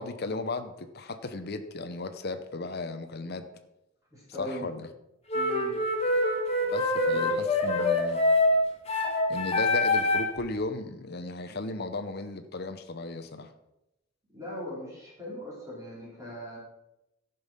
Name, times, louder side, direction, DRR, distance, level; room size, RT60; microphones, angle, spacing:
voice 1, 0.0-3.4 4.4-4.9 6.7-8.4 9.3-13.5, left 2 dB, 50° left, 8 dB, 0.8 m, -35 dB
voice 2, 4.1-4.7 5.3-5.8 7.1-7.4 14.3-16.6, equal, 15° right, -7 dB, 4.0 m, -39 dB
sound 1, 5.3-10.4, left 2 dB, 30° left, 1.6 m, -25 dB
14.0 x 5.5 x 5.6 m, 0.89 s
head